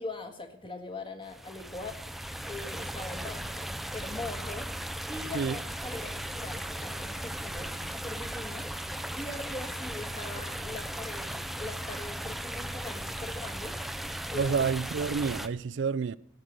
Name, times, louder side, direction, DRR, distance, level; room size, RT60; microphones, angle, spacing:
voice 1, 0.0-4.7 5.1-7.7 8.0-8.7 9.2-13.7 14.3-14.6, left 2 dB, 25° left, 1.6 m, -41 dB
sound 1, 1.2-15.5, right 1 dB, ahead, 0.4 m, -37 dB
voice 2, 14.3-16.2, right 5 dB, 90° right, 0.4 m, -29 dB
16.0 x 6.7 x 7.4 m
head